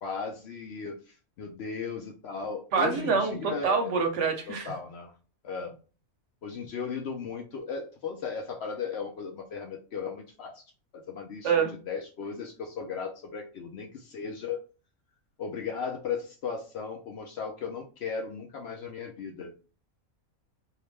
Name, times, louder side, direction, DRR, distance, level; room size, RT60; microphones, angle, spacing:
voice 1, 0.0-3.9 4.5-5.1 5.4-5.8 6.4-10.6 10.9-14.6 15.4-19.5, left 5 dB, 65° left, 0.7 m, -36 dB
voice 2, 2.7-4.7 11.4-11.7, right 5 dB, 65° right, 0.9 m, -26 dB
2.7 x 2.1 x 3.1 m
omnidirectional pair, 1.5 m